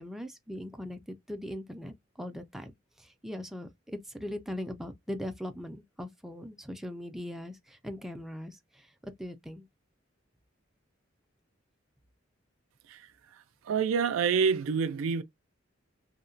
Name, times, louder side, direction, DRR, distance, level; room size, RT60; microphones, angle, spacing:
voice 1, 0.0-2.7 3.0-9.7, left 1 dB, ahead, 0.3 m, -40 dB
voice 2, 13.6-15.2, right 6 dB, 90° right, 0.3 m, -27 dB
2.7 x 2.1 x 2.5 m
head